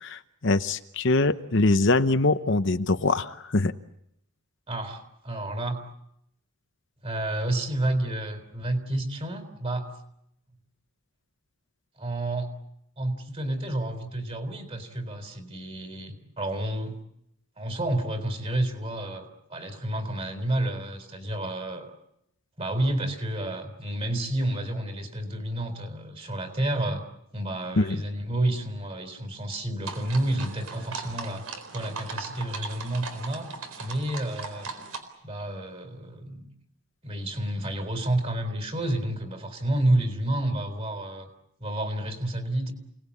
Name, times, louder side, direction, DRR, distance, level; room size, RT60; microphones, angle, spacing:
voice 1, 0.0-3.7 27.8-28.0, left 2 dB, 55° left, 10 dB, 0.9 m, -23 dB
voice 2, 4.7-5.8 7.0-9.9 12.0-12.5 13.0-17.0 17.6-21.9 22.6-27.0 27.3-31.5 31.7-33.5 33.8-34.7 35.2-36.5 37.0-41.3 41.6-42.7, right 1 dB, 25° right, 7 dB, 3.9 m, -30 dB
sound 1, 29.8-35.0, right 4 dB, 80° right, 4.2 m, -38 dB
29.0 x 19.5 x 8.6 m, 0.79 s
head